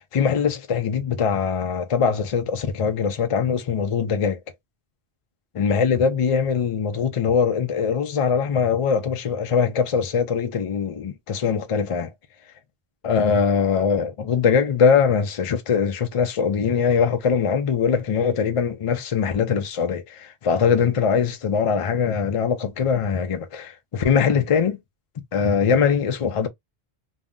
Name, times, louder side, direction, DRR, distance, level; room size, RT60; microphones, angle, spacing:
voice 1, 0.0-4.4 5.6-12.1 13.0-24.8 25.2-26.5, left 6 dB, 55° left, 0.3 m, -22 dB
2.6 x 2.0 x 3.5 m
omnidirectional pair, 1.1 m